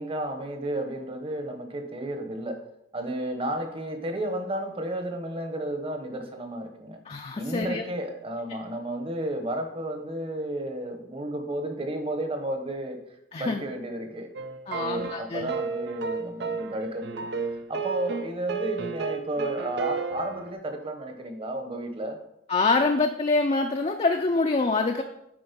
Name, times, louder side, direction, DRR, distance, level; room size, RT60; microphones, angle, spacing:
voice 1, 0.0-2.6 2.9-7.0 7.4-13.0 13.4-14.3 14.7-17.3 17.7-22.2, right 1 dB, 30° right, 5 dB, 1.0 m, -32 dB
voice 2, 7.1-7.8 13.3-13.6 14.7-15.5 22.5-25.0, left 3 dB, 35° left, 4 dB, 0.5 m, -25 dB
sound 1, 14.4-20.5, right 5 dB, 75° right, 0.6 m, -32 dB
8.7 x 4.3 x 5.2 m, 0.80 s
head